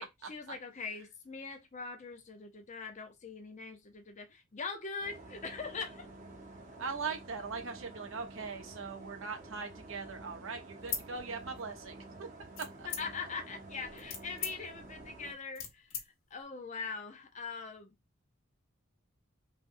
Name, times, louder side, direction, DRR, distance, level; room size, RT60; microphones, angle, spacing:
voice 1, 0.0-6.1 12.8-17.9, left 4 dB, 35° left, 0.6 m, -42 dB
sound 1, 5.0-15.3, right 2 dB, 35° right, 0.8 m, -50 dB
voice 2, 6.8-12.3 12.8-12.9, right 5 dB, 75° right, 0.8 m, -40 dB
sound 2, 10.8-11.9 12.6-13.4 13.8-16.0, left 8 dB, 75° left, 0.8 m, -41 dB
3.2 x 2.2 x 2.6 m
head